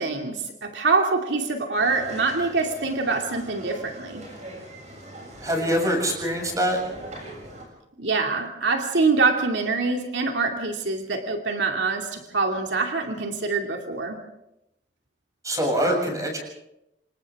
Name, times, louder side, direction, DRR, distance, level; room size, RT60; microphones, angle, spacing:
voice 1, 0.0-4.2 7.4-7.5 8.0-14.2, right 4 dB, 85° right, 3 dB, 2.6 m, -25 dB
sound 1, 1.7-7.7, right 1 dB, 40° right, 7.3 m, -41 dB
voice 2, 5.4-6.8 15.4-16.4, equal, 20° right, 2 dB, 7.2 m, -24 dB
28.0 x 26.5 x 3.7 m, 0.82 s
head